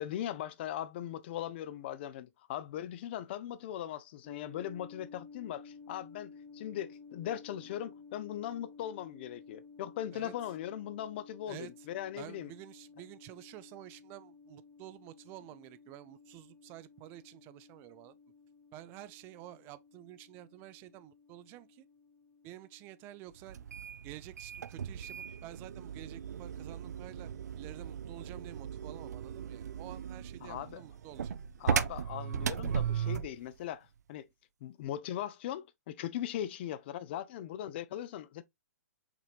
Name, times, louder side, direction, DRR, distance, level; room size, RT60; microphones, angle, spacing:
voice 1, 0.0-12.5 30.4-30.8 31.6-34.3 34.6-38.4, left 11 dB, 40° left, 0.4 m, -39 dB
sound 1, 4.2-23.8, left 5 dB, 25° left, 1.4 m, -55 dB
voice 2, 11.5-11.9 12.2-18.2 18.7-21.8 22.4-23.6 24.0-31.4, right 15 dB, 25° right, 0.4 m, -50 dB
sound 2, 23.5-33.4, right 8 dB, 80° right, 0.5 m, -37 dB
5.9 x 3.1 x 2.4 m
hypercardioid pair, 150°, 9 cm